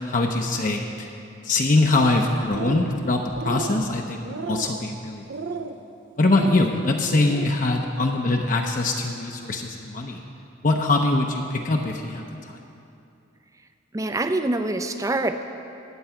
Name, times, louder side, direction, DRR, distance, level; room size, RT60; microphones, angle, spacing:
voice 1, 0.0-1.1 1.4-5.6 6.2-10.2 10.6-12.2, left 2 dB, 45° left, 2 dB, 0.6 m, -23 dB
sound 1, 2.4-3.0 3.3-3.8 4.2-4.8 5.3-5.8 6.2-6.6 7.1-7.5, right 4 dB, 70° right, 0.5 m, -34 dB
voice 2, 13.9-15.4, right 2 dB, 15° right, 8 dB, 0.4 m, -25 dB
13.5 x 4.6 x 8.8 m, 2.7 s
head